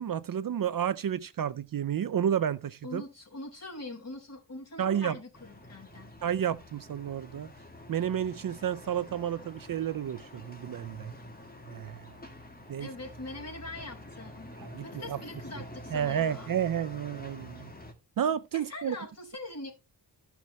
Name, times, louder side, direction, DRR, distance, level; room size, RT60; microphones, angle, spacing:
voice 1, 0.0-3.0 4.8-5.2 6.2-7.5 7.9-11.1 11.7-12.2 12.7-12.9 14.6-15.2 15.9-17.7 18.2-19.0, right 9 dB, 55° right, 0.5 m, -31 dB
voice 2, 2.8-6.1 12.8-14.5 14.8-16.5 18.5-19.7, left 2 dB, 40° left, 4.3 m, -42 dB
sound 1, 5.3-17.9, left 1 dB, 20° left, 2.2 m, -47 dB
14.5 x 5.9 x 3.0 m
wide cardioid pair, 105°, 41 cm